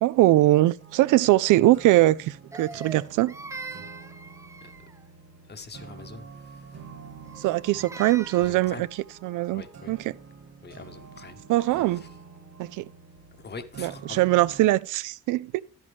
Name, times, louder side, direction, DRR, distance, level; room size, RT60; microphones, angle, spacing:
voice 1, 0.0-3.3 7.4-8.9 9.2-10.0 11.5-12.1 12.6-12.9 13.8-15.6, right 16 dB, 85° right, 0.5 m, -22 dB
sound 1, 0.8-14.7, right 5 dB, 60° right, 2.0 m, -47 dB
Crying sobbing, 2.5-5.0 7.3-8.7, right 3 dB, 10° right, 0.4 m, -42 dB
voice 2, 5.5-6.9 8.3-8.8 9.5-10.0 10.6-12.1 13.4-14.2, left 4 dB, 35° left, 1.1 m, -44 dB
10.5 x 8.1 x 3.5 m
cardioid pair, 90°, 30 cm